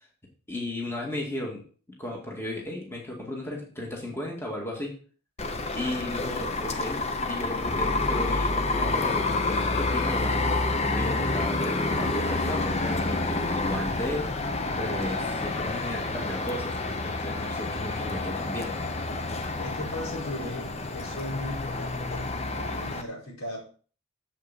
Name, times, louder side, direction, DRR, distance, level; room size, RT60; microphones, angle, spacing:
voice 1, 0.5-1.6 2.0-4.9 5.7-7.0 7.3-10.6 10.9-14.3 14.7-18.8, left 1 dB, 10° left, -2 dB, 2.0 m, -35 dB
sound 1, 5.4-23.0, left 2 dB, 30° left, 0.8 m, -28 dB
voice 2, 19.6-23.7, left 1 dB, 90° left, -3 dB, 4.8 m, -37 dB
8.1 x 7.4 x 4.1 m, 0.41 s
head